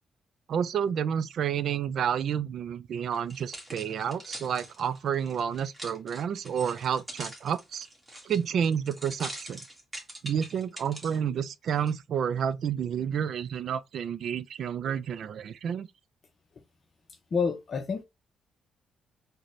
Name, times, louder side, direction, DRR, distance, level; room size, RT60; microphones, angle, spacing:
voice 1, 0.5-7.9 8.3-9.6 10.2-15.9, right 8 dB, 65° right, 0.3 m, -30 dB
sound 1, 3.1-11.2 11.8-11.9, right 1 dB, 15° right, 1.5 m, -44 dB
voice 2, 17.3-18.0, left 5 dB, 45° left, 0.5 m, -28 dB
4.0 x 2.1 x 3.0 m
cardioid pair, 90°, 0 cm